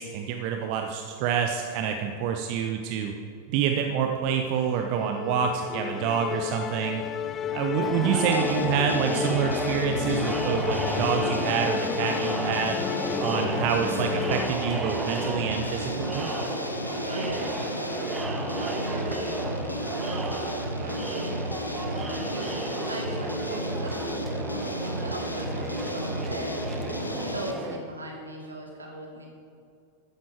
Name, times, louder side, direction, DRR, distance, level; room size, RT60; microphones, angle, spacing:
voice 1, 0.0-3.1 3.5-7.0 7.5-12.8 13.2-16.3, right 8 dB, 45° right, 4 dB, 0.8 m, -27 dB
Musical instrument, 4.4-14.5, left 9 dB, 25° left, 0.3 m, -32 dB
Crowd, 7.8-27.8, right 2 dB, 15° right, 1.3 m, -33 dB
sound 1, 8.3-27.5, equal, 85° left, 0.8 m, -33 dB
voice 2, 17.0-18.0 18.6-20.3 20.8-22.5 22.9-26.5 27.1-29.3, right 1 dB, 75° right, 0 dB, 2.4 m, -39 dB
13.5 x 9.9 x 4.6 m, 2.5 s
figure-of-eight pair, 90°, 0 cm